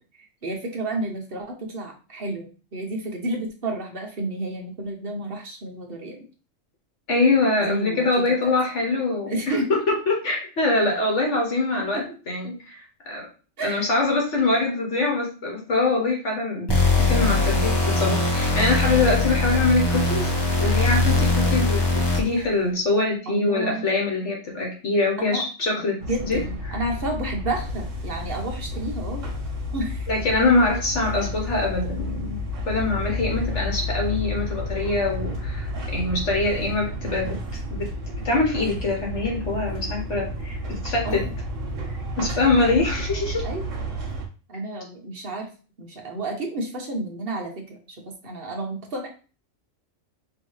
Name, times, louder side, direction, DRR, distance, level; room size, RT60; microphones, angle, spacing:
voice 1, 0.4-6.2 7.6-8.5 9.3-9.8 11.9-12.0 13.6-13.9 14.5-14.6 23.3-23.8 25.2-25.4 26.1-29.2 29.7-30.1 41.0-41.3 43.4-43.7 44.5-45.5 45.8-49.1, right 2 dB, 50° right, 1 dB, 1.0 m, -31 dB
voice 2, 7.1-13.2 13.6-16.7 17.0-20.3 20.6-26.4 26.7-26.8 30.1-37.4 37.7-37.9 38.2-41.2 42.2-43.4, left 3 dB, 60° left, 0 dB, 1.4 m, -24 dB
sound 1, 16.7-22.4, left 3 dB, 20° left, 0.8 m, -21 dB
sound 2, 26.0-44.3, left 1 dB, 65° right, 1.5 m, -31 dB
5.5 x 2.7 x 3.1 m, 0.35 s
omnidirectional pair, 1.4 m